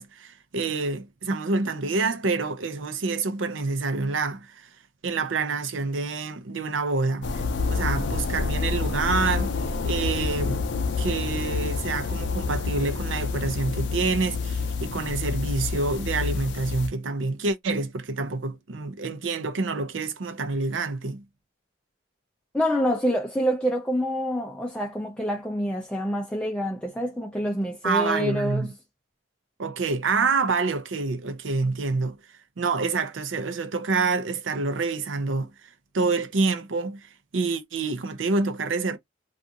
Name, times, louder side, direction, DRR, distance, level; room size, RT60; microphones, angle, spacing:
voice 1, 0.0-4.7 5.0-7.4 7.7-10.6 11.0-21.2 27.8-28.7 29.6-32.2 32.6-35.5 35.9-39.0, right 4 dB, 85° right, 0.6 m, -27 dB
sound 1, 7.2-16.9, left 4 dB, 65° left, 0.5 m, -28 dB
voice 2, 22.5-28.7, equal, 5° left, 0.4 m, -27 dB
2.5 x 2.4 x 2.6 m
head